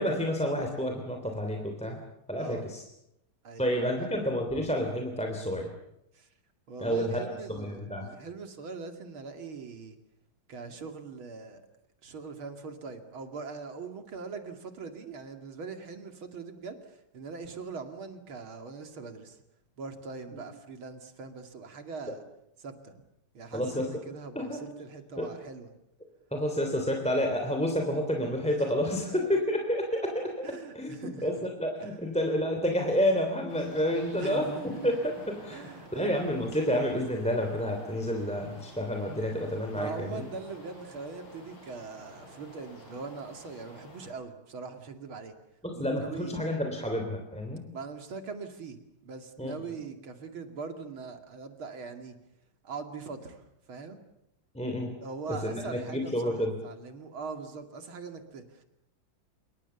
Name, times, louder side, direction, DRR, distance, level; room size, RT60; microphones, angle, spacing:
voice 1, 0.0-2.0 2.3-2.8 3.6-5.7 6.8-8.1 23.5-23.9 24.3-24.6 25.2-25.3 26.3-40.2 45.6-47.6 49.4-49.5 54.5-54.9 55.3-56.5, equal, 5° left, 2 dB, 3.1 m, -30 dB
voice 2, 3.4-4.1 6.1-6.3 6.7-10.0 10.5-11.6 12.0-19.4 19.8-22.2 22.6-22.9 23.3-25.7 28.6-29.2 30.4-31.3 31.8-32.2 34.2-35.0 35.5-36.2 39.7-45.3 45.7-46.5 47.7-52.2 52.6-54.0 55.0-58.6, right 4 dB, 80° right, 6 dB, 3.2 m, -42 dB
sound 1, 33.5-44.1, left 1 dB, 80° left, 6.3 m, -50 dB
27.0 x 23.5 x 7.1 m, 0.82 s
omnidirectional pair, 2.2 m